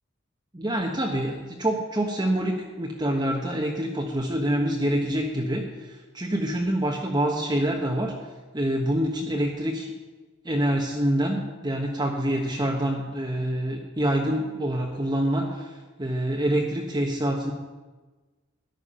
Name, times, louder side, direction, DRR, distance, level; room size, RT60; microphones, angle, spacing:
voice 1, 0.5-8.2 8.5-9.9 10.4-15.7 16.0-17.5, right 1 dB, 20° right, -1 dB, 1.1 m, -26 dB
14.0 x 11.0 x 5.6 m, 1.3 s
head